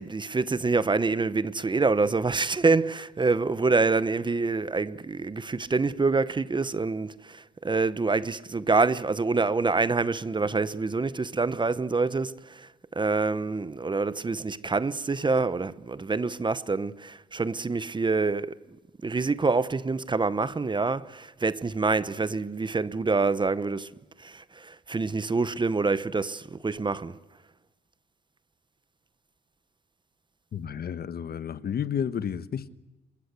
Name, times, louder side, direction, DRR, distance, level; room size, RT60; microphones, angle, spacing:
voice 1, 0.0-18.6 19.0-23.9 24.2-27.2, right 3 dB, 25° right, 1.0 m, -26 dB
voice 2, 30.5-32.7, left 8 dB, 50° left, 1.2 m, -31 dB
28.0 x 23.5 x 8.2 m
cardioid pair, 90°, 20 cm